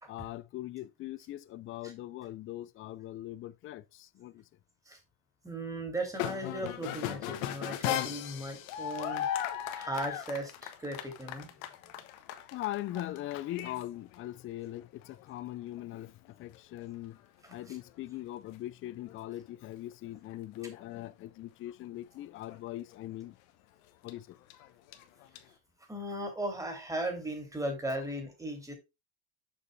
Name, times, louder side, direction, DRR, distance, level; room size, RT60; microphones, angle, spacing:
voice 1, 0.1-4.4 12.5-16.1 16.4-17.2 17.5-23.3 24.0-24.4, left 15 dB, 30° left, 0.4 m, -41 dB
voice 2, 5.4-9.3 9.7-11.5 17.4-17.8 25.9-28.7, right 1 dB, 10° right, 2.5 m, -37 dB
sound 1, 6.1-13.8 14.1-14.2 14.8-15.4 15.8-15.9 16.2-16.3 16.5-16.8 18.5-18.6 19.0-19.3 19.9-21.1 22.2-22.6 22.9-23.0 24.1-25.4, left 11 dB, 80° left, 1.1 m, -37 dB
6.9 x 5.3 x 3.2 m
supercardioid pair, 120°, 41 cm